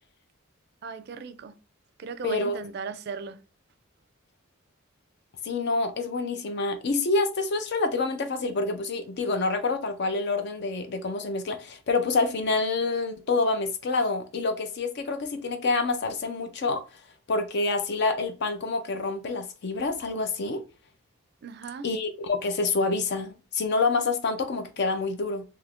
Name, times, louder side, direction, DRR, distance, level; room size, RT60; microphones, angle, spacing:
voice 1, 0.8-1.5 2.0-3.4 21.4-21.9, right 5 dB, 50° right, 0.3 m, -37 dB
voice 2, 2.2-2.6 5.4-16.8 17.3-20.6 21.8-25.4, left 3 dB, 50° left, 0.4 m, -27 dB
2.8 x 2.4 x 3.4 m
head